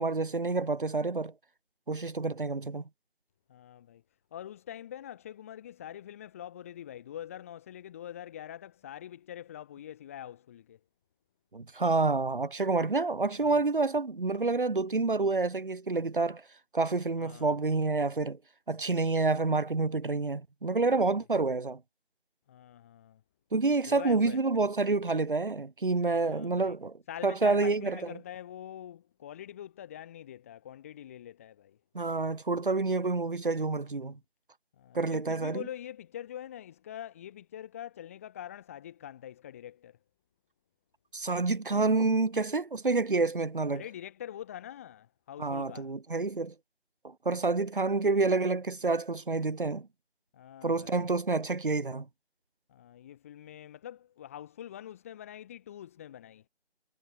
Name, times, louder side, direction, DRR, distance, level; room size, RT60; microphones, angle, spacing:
voice 1, 0.0-1.3 1.9-2.8 11.5-16.4 16.7-18.4 18.7-21.8 23.5-28.2 31.9-34.2 34.9-35.7 41.1-43.8 45.4-46.5 47.0-49.9 50.6-52.1, right 3 dB, 50° right, 3.7 m, -28 dB
voice 2, 3.5-4.0 4.3-10.8 13.4-13.6 17.2-17.6 22.5-23.2 23.9-24.4 26.1-26.8 27.1-31.8 34.8-40.0 43.7-45.9 50.3-51.1 52.7-56.4, left 11 dB, 15° left, 4.0 m, -44 dB
figure-of-eight pair, 170°, 34 cm